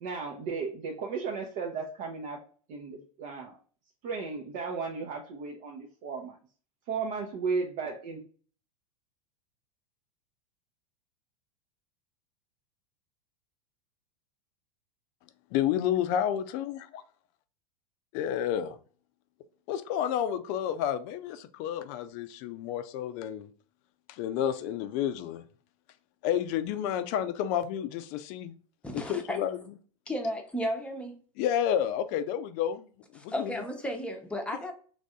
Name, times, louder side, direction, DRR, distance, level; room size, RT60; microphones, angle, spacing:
voice 1, 0.0-2.4 2.7-3.6 4.0-6.4 6.9-8.2, right 5 dB, 50° right, 0.7 m, -35 dB
voice 2, 15.5-17.0 18.1-18.7 19.7-23.5 24.1-25.4 26.2-28.6 28.9-29.6 31.4-32.9 33.2-33.6, left 10 dB, 45° left, 0.4 m, -30 dB
voice 3, 28.8-29.4 30.1-31.2 33.3-34.7, equal, 5° left, 0.8 m, -33 dB
3.2 x 2.6 x 3.6 m
hypercardioid pair, 90°, 19 cm